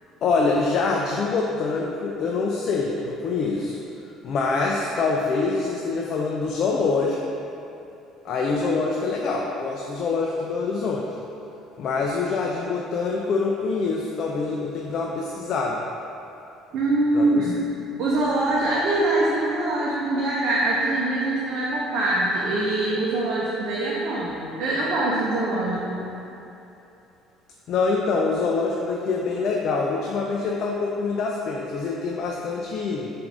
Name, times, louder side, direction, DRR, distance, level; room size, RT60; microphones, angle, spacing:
voice 1, 0.2-3.8 4.2-7.2 8.2-11.1 11.8-15.8 17.1-17.5 27.7-33.1, left 4 dB, 55° left, -1 dB, 0.3 m, -25 dB
voice 2, 16.7-17.5 18.0-26.1, right 2 dB, 60° right, -6 dB, 0.6 m, -23 dB
4.5 x 2.5 x 3.7 m, 2.9 s
cardioid pair, 105°, 0 cm